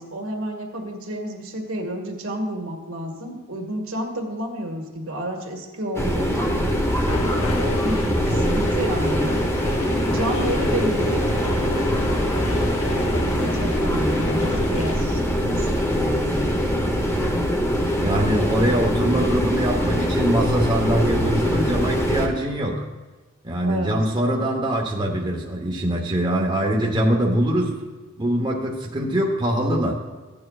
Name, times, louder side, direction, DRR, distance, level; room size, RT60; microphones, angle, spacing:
voice 1, 0.0-6.6 7.6-9.3 10.0-11.4 13.1-15.2 15.5-16.8 23.7-24.0, right 1 dB, 75° right, 1 dB, 1.8 m, -30 dB
sound 1, 5.9-22.3, equal, 15° left, 0.9 m, -22 dB
sound 2, 7.1-14.9, left 3 dB, 80° left, 0.9 m, -33 dB
voice 2, 18.0-22.8 23.4-27.8 28.2-29.9, right 1 dB, 20° right, -1 dB, 1.0 m, -23 dB
14.5 x 8.8 x 2.4 m, 1.2 s
head